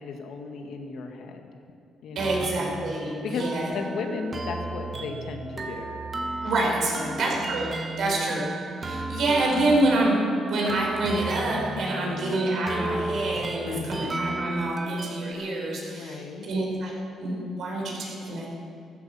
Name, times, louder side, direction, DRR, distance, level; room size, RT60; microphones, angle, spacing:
voice 1, 0.0-1.4 2.0-2.7 3.2-6.0 6.8-7.5 7.9-8.4 11.7-12.4 13.6-14.0 15.9-16.5, left 4 dB, 75° left, 3 dB, 2.0 m, -36 dB
voice 2, 2.1-3.7 6.4-7.7 8.0-8.5 8.8-16.9 17.2-18.5, right 2 dB, 70° right, -1 dB, 5.1 m, -27 dB
sound 1, 2.2-15.3, right 2 dB, 35° right, 1.6 m, -34 dB
14.5 x 13.5 x 7.2 m, 2.4 s
cardioid pair, 90°, 0 cm